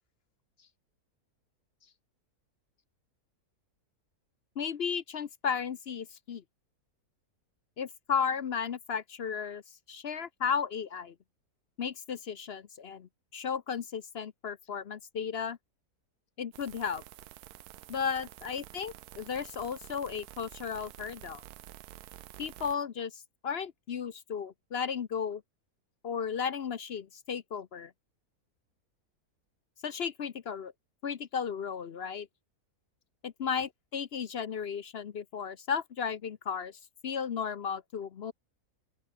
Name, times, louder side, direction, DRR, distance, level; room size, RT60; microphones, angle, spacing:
voice 1, 4.6-6.4 7.8-9.6 9.9-11.1 11.8-15.6 16.4-17.0 17.9-21.4 22.4-25.4 26.0-27.9 29.8-30.7 31.0-32.3 33.2-38.3, left 7 dB, 50° left, 0.8 m, -34 dB
sound 1, 16.5-22.8, right 13 dB, 80° right, 1.2 m, -50 dB
open air
omnidirectional pair, 1.6 m